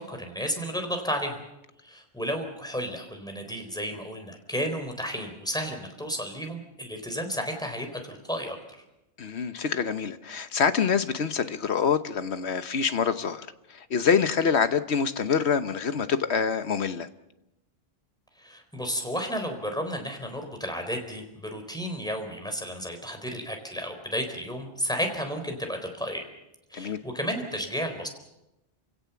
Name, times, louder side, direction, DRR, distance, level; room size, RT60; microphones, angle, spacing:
voice 1, 0.0-1.4 1.8-8.6 18.4-26.2 26.7-28.1, equal, 5° left, 4.0 m, -32 dB
voice 2, 9.2-17.1 26.7-27.0, left 6 dB, 75° left, 1.3 m, -26 dB
29.0 x 17.0 x 7.1 m
omnidirectional pair, 1.1 m